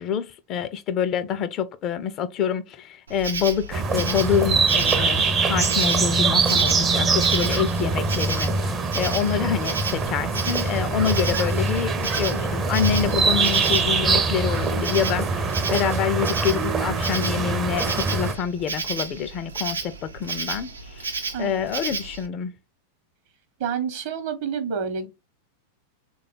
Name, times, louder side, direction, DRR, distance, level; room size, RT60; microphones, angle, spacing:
voice 1, 0.0-21.1 21.4-22.5, left 8 dB, 35° left, 0.4 m, -27 dB
Insect, 3.1-22.3, right 4 dB, 75° right, 0.5 m, -33 dB
sound 1, 3.7-18.3, right 4 dB, 25° right, 0.5 m, -23 dB
voice 2, 21.3-21.7 23.6-25.1, right 6 dB, 50° right, 0.9 m, -28 dB
3.2 x 2.3 x 3.9 m
figure-of-eight pair, 90°, 0 cm